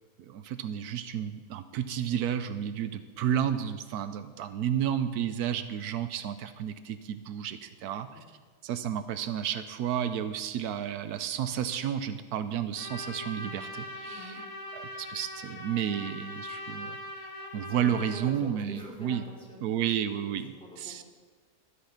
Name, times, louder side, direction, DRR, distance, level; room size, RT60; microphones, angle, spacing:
voice 1, 0.2-8.2 8.6-14.4 14.7-17.3 17.5-19.2 19.6-21.0, right 9 dB, 85° right, 11 dB, 1.2 m, -32 dB
Trumpet, 12.8-18.2, left 1 dB, 55° left, 1.7 m, -41 dB
voice 2, 14.0-14.4 17.7-19.6 20.0-21.0, left 1 dB, 5° left, -3 dB, 2.7 m, -45 dB
13.5 x 8.4 x 5.9 m, 1.5 s
omnidirectional pair, 1.6 m